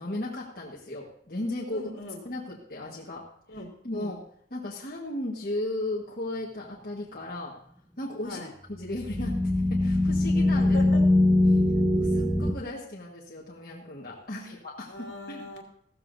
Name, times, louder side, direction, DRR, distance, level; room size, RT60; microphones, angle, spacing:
voice 1, 0.0-1.8 2.2-3.3 3.8-4.2 4.5-7.6 8.0-8.4 8.7-10.8 11.5-11.6 11.9-15.4, left 1 dB, 50° left, -4 dB, 1.5 m, -35 dB
voice 2, 1.7-2.2 3.5-4.2 8.2-8.5 10.7-11.0 14.3-14.5 14.9-15.6, left 2 dB, 70° left, 1 dB, 2.6 m, -40 dB
sound 1, 8.8-12.5, left 1 dB, 10° right, 0.8 m, -22 dB
15.0 x 14.5 x 2.7 m, 0.66 s
head